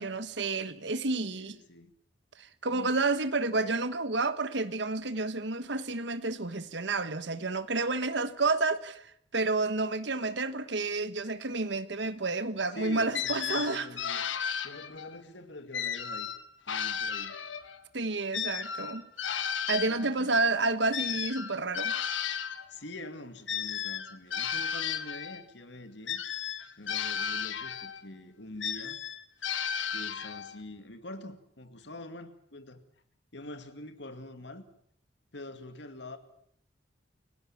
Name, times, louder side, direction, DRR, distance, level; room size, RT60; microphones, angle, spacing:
voice 1, 0.0-1.6 2.4-13.9 17.9-19.1 19.7-21.9, right 3 dB, 70° right, 1.3 m, -30 dB
voice 2, 1.3-1.9 2.7-2.9 12.7-14.2 14.6-16.3 16.7-17.4 19.9-20.4 22.7-26.2 26.8-29.0 29.9-32.8 33.3-34.6 35.3-36.2, left 1 dB, 70° left, 2.3 m, -45 dB
sound 1, 13.1-15.2 15.7-17.8 18.3-22.7 23.5-25.4 26.1-28.0 28.6-30.6, left 8 dB, 85° left, 1.5 m, -34 dB
29.0 x 17.0 x 7.3 m
head